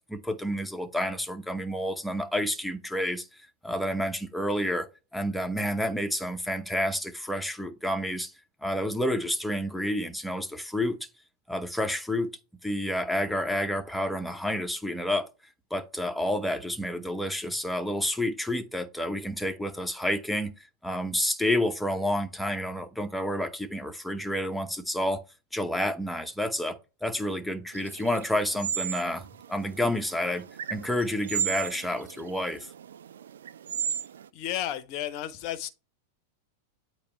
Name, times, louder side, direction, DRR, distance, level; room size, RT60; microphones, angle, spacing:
voice 1, 0.1-4.9 5.1-8.3 8.6-11.0 11.5-12.3 12.6-15.3 15.7-25.2 25.5-30.4 30.7-32.7, left 1 dB, 5° left, 0.8 m, -29 dB
sound 1, 27.7-34.3, right 9 dB, 65° right, 0.3 m, -35 dB
voice 2, 34.3-35.7, left 11 dB, 45° left, 0.7 m, -33 dB
8.4 x 3.0 x 4.3 m
figure-of-eight pair, 90°, 0 cm